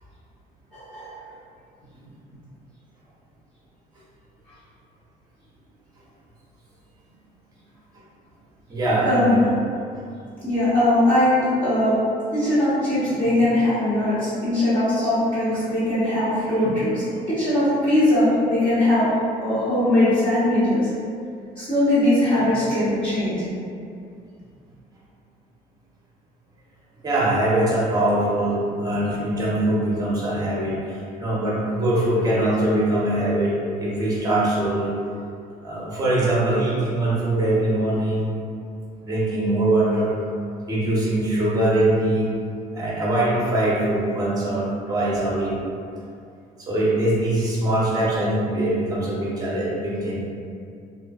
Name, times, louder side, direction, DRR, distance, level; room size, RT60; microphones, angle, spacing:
voice 1, 0.7-1.2 9.0-9.3 10.4-12.0 12.3-19.1 19.4-20.9 21.6-23.4, left 1 dB, 30° left, -15 dB, 1.0 m, -20 dB
voice 2, 8.7-9.5 27.0-34.9 35.6-38.3 39.0-40.2 40.7-42.3 42.7-45.6 46.6-50.2, right 1 dB, 20° right, -6 dB, 0.8 m, -22 dB
2.5 x 2.5 x 2.3 m, 2.4 s
cardioid pair, 110°, 17 cm